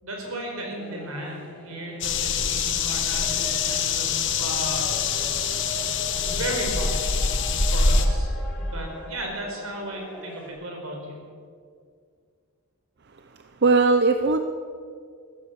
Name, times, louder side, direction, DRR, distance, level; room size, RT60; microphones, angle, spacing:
voice 1, 0.0-4.1 4.4-4.9 6.2-7.1 7.6-11.2, right 1 dB, 80° right, 0 dB, 4.7 m, -35 dB
sound 1, 0.8-10.5, left 2 dB, 5° left, 3.5 m, -41 dB
sound 2, 2.0-8.1, left 5 dB, 60° left, 1.3 m, -24 dB
voice 2, 13.6-14.4, right 3 dB, 50° right, 7 dB, 0.7 m, -19 dB
14.5 x 14.0 x 7.1 m, 2.1 s
head